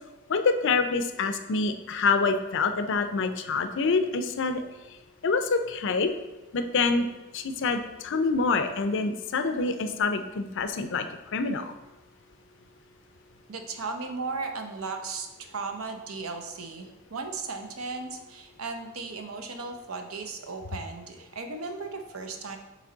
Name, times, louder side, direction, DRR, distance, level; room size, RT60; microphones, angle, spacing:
voice 1, 0.3-4.6 5.2-6.1 6.5-7.1 7.3-11.1 11.3-11.7, left 4 dB, 60° left, 8 dB, 0.5 m, -26 dB
voice 2, 13.5-22.6, right 4 dB, 75° right, 5 dB, 0.7 m, -36 dB
8.0 x 3.2 x 3.9 m, 1.1 s
head